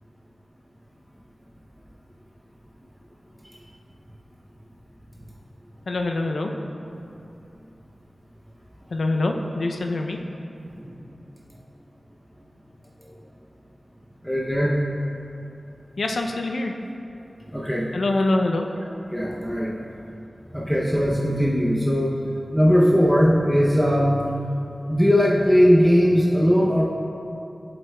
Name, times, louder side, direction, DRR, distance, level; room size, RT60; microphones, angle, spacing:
voice 1, 5.9-6.5 8.9-10.2 16.0-16.7 17.9-18.7, left 2 dB, 85° left, 3 dB, 0.4 m, -24 dB
voice 2, 14.2-14.8 17.5-17.9 19.1-19.8 20.5-22.1 22.5-24.3 24.9-26.8, equal, 5° left, -4 dB, 0.6 m, -19 dB
7.7 x 7.6 x 2.2 m, 2.7 s
wide cardioid pair, 90°, 0 cm